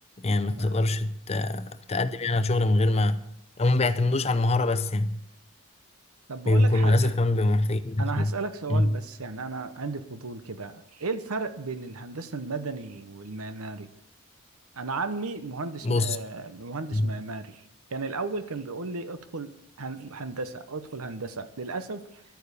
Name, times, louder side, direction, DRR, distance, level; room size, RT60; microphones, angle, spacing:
voice 1, 0.2-3.2 3.6-5.2 6.5-8.3 8.7-8.9 15.8-16.2 16.9-17.1, left 2 dB, 30° left, 0.6 m, -24 dB
voice 2, 6.3-7.1 8.0-13.9 14.7-17.6 17.9-22.2, right 3 dB, 85° right, 1.0 m, -35 dB
12.0 x 9.3 x 6.9 m
head